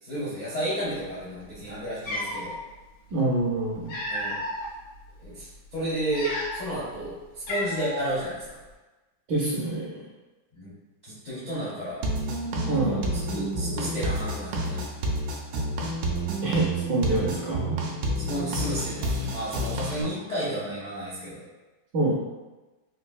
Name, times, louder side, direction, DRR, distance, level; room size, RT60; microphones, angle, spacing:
voice 1, 0.0-2.6 4.1-4.4 5.2-8.6 10.5-10.7 11.0-12.0 12.6-13.0 13.3-14.9 18.1-21.4, right 1 dB, 65° left, -10 dB, 0.4 m, -32 dB
Cat, 1.5-1.6 2.0-2.5 3.5-4.7 5.2-5.4 6.0-6.8 7.0-7.1 7.5-8.1, left 1 dB, 85° left, 1.7 m, -32 dB
voice 2, 3.1-4.0 9.3-10.1 12.7-13.2 16.4-17.8 20.0-20.2 21.9-22.1, right 2 dB, 70° right, -5 dB, 1.1 m, -26 dB
sound 1, 12.0-20.0, right 1 dB, 90° right, 1.4 m, -29 dB
3.9 x 2.5 x 2.2 m, 1.2 s
omnidirectional pair, 2.1 m